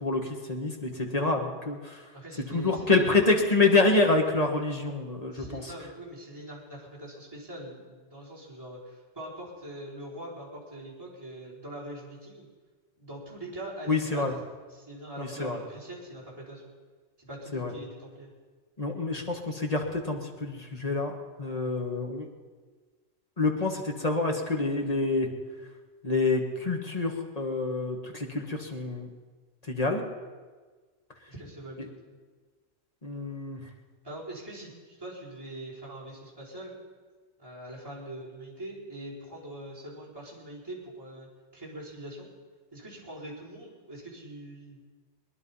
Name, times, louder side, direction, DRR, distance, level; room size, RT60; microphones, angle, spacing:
voice 1, 0.0-2.1 2.5-5.6 13.9-14.3 15.2-15.6 17.5-17.7 18.8-22.3 23.4-25.3 26.0-29.1 29.6-30.0 31.8-31.9 33.0-33.6, left 3 dB, 35° left, 2 dB, 1.8 m, -27 dB
voice 2, 2.1-3.2 5.3-12.5 13.0-14.2 14.7-16.7 17.2-18.3 31.3-32.2 34.0-36.7 37.4-41.3 41.5-42.3 42.7-44.8, right 1 dB, 20° right, -7 dB, 4.8 m, -42 dB
21.5 x 11.0 x 5.6 m, 1.4 s
omnidirectional pair, 1.2 m